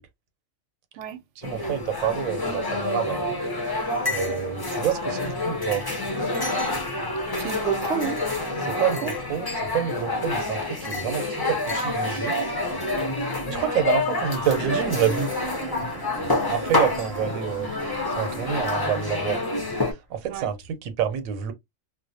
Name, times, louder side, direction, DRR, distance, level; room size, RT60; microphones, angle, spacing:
sound 1, 1.4-19.9, left 2 dB, 35° left, 0.3 m, -28 dB
voice 1, 1.4-3.2 4.1-5.8 8.6-12.4 13.2-15.3 16.5-17.7 18.2-19.4 19.8-21.5, right 9 dB, 90° right, 1.0 m, -28 dB
voice 2, 7.4-9.1 20.3-20.5, right 9 dB, 70° right, 0.8 m, -31 dB
sound 2, 14.5-19.4, right 2 dB, 30° right, 0.8 m, -37 dB
2.4 x 2.0 x 2.5 m
omnidirectional pair, 1.4 m